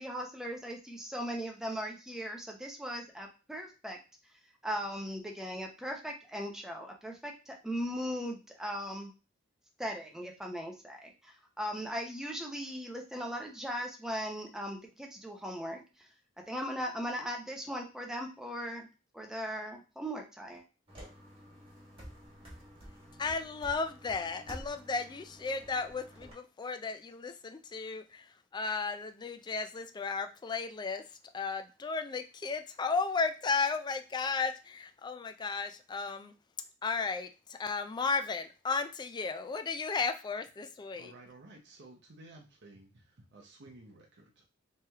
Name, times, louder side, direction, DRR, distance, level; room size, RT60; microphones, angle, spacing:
voice 1, 0.0-4.0 4.6-9.1 9.8-15.8 16.5-18.9 19.1-20.6, equal, 5° right, 1 dB, 0.7 m, -38 dB
sound 1, 20.9-26.3, equal, 25° right, 1.4 m, -50 dB
voice 2, 23.2-31.0 31.3-36.3 36.8-41.1, left 4 dB, 20° left, 7 dB, 0.3 m, -34 dB
voice 3, 40.9-44.4, right 2 dB, 60° right, 0 dB, 0.7 m, -54 dB
3.2 x 2.9 x 3.4 m, 0.31 s
head